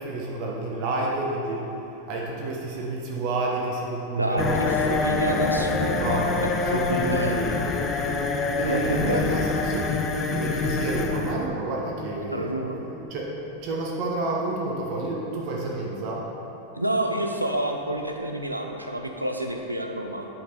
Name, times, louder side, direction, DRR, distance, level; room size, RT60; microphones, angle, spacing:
voice 1, 0.0-1.6 2.1-5.1 5.9-6.4 6.7-7.6 8.6-9.9 10.3-12.5 13.1-13.2 13.6-16.3, right 2 dB, 45° right, -2 dB, 1.2 m, -29 dB
voice 2, 4.2-7.4 8.0-8.1 8.7-9.5 12.3-12.8 16.8-20.3, right 1 dB, 85° right, 3 dB, 0.6 m, -29 dB
sound 1, 4.4-14.0, left 3 dB, 25° left, 0.6 m, -27 dB
9.8 x 5.2 x 4.4 m, 2.9 s
figure-of-eight pair, 90°, 0 cm